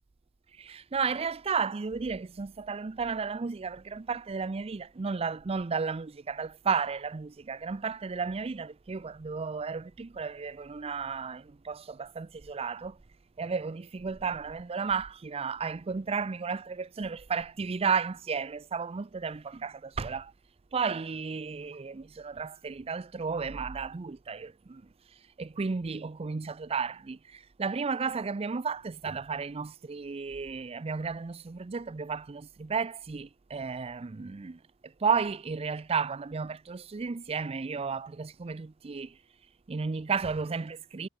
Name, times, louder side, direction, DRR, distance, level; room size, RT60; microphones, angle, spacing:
voice 1, 0.6-13.0 13.4-20.3 20.7-24.8 25.4-34.6 35.0-39.1 39.7-41.1, right 5 dB, 30° right, 0.4 m, -33 dB
head